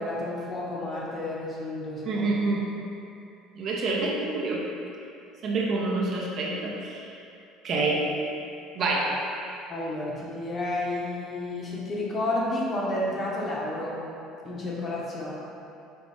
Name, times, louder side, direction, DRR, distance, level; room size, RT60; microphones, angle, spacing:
voice 1, 0.0-2.3 9.7-14.0 14.4-15.3, left 1 dB, 35° left, -5 dB, 0.9 m, -31 dB
voice 2, 2.1-2.7 3.5-4.6 5.4-7.1 7.6-8.0 8.7-9.2, right 3 dB, 50° right, -3 dB, 0.7 m, -27 dB
4.2 x 3.0 x 3.2 m, 2.7 s
supercardioid pair, 110°, 0 cm